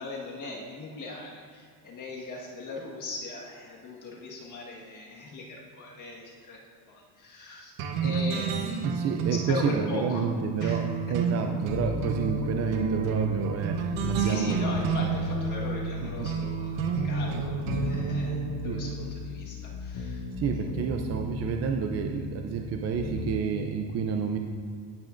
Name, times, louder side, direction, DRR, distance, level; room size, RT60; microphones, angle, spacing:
voice 1, 0.0-6.6 6.9-7.7 8.0-9.0 9.5-10.2 10.6-10.8 11.1-11.2 14.2-20.2, left 3 dB, 40° left, -3 dB, 1.6 m, -39 dB
sound 1, 7.8-19.1, right 6 dB, 85° right, 1.1 m, -30 dB
voice 2, 8.8-14.6 16.0-16.3 17.3-17.4 17.7-17.8 18.6-18.8 20.4-24.4, right 6 dB, 30° right, 4 dB, 0.5 m, -30 dB
sound 2, 11.7-14.4 14.7-16.7 17.0-20.4 20.7-23.3 23.6-23.7, left 3 dB, 65° left, 1.8 m, -35 dB
16.5 x 8.8 x 2.6 m, 2.1 s
cardioid pair, 140°, 49 cm